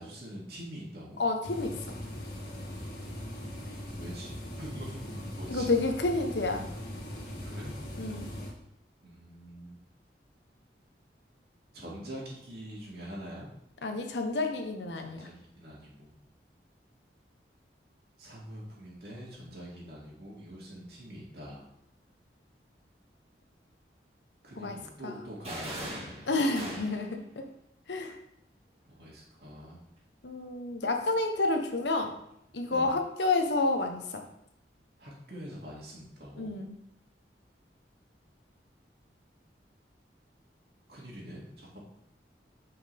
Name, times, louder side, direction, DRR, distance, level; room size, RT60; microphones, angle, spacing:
voice 1, 0.0-1.2 4.0-5.7 7.4-7.7 9.0-9.8 11.7-13.5 15.0-16.2 18.2-21.7 24.4-26.2 28.9-29.8 32.7-32.9 35.0-36.6 40.9-41.8, equal, 60° right, -4 dB, 2.5 m, -44 dB
voice 2, 1.2-2.0 5.5-6.7 8.0-8.3 13.8-15.3 24.6-24.8 25.0-25.2 26.3-27.4 27.9-28.2 30.2-32.1 32.5-34.2 36.4-36.8, left 2 dB, 85° left, 5 dB, 1.0 m, -29 dB
sound 1, 1.4-8.5, left 1 dB, 60° left, 2.0 m, -40 dB
sound 2, 25.4-27.2, right 1 dB, 35° right, 2.0 m, -39 dB
8.0 x 5.7 x 3.5 m, 0.76 s
head